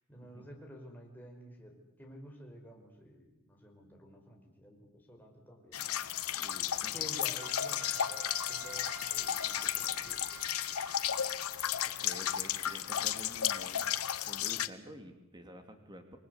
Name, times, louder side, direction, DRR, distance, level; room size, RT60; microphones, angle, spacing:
voice 1, 0.0-5.8 6.9-10.9, equal, 10° left, 0 dB, 5.1 m, -52 dB
sound 1, 5.7-14.7, left 10 dB, 80° left, 1.0 m, -34 dB
voice 2, 6.3-7.1 11.8-14.0 14.3-16.2, right 1 dB, 20° right, 6 dB, 2.7 m, -50 dB
Wind instrument woodwind instrument, 7.4-11.7, right 5 dB, 60° right, 2.9 m, -49 dB
28.0 x 21.0 x 8.3 m, 0.89 s
head